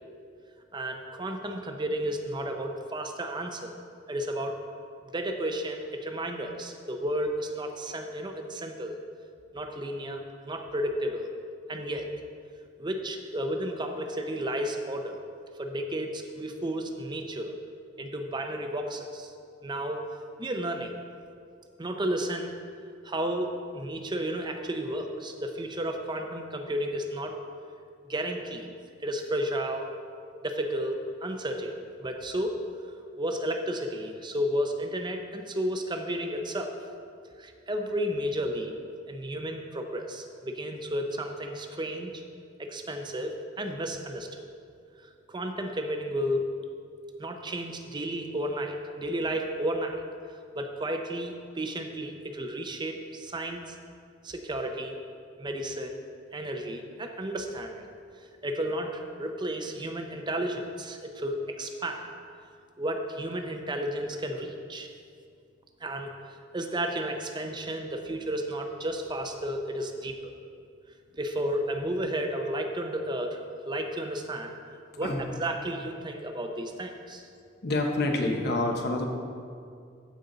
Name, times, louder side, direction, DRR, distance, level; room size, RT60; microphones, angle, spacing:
voice 1, 0.7-3.8 4.1-4.6 5.0-9.0 9.5-11.3 11.7-12.1 12.8-15.2 15.6-17.5 18.0-19.3 19.6-20.1 20.4-21.0 21.8-22.5 23.0-27.4 28.1-28.7 29.0-29.9 30.4-32.6 33.2-36.8 37.4-38.7 39.1-42.2 42.6-44.5 45.0-46.4 47.2-50.0 50.5-53.8 54.2-55.0 55.4-56.0 56.3-57.8 58.4-62.0 62.8-64.9 65.8-66.1 66.5-70.3 71.1-74.6 75.0-77.3, right 1 dB, 25° right, 4 dB, 0.6 m, -32 dB
voice 2, 77.6-79.1, left 2 dB, 55° left, 2 dB, 1.0 m, -27 dB
14.5 x 5.2 x 4.0 m, 2.3 s
head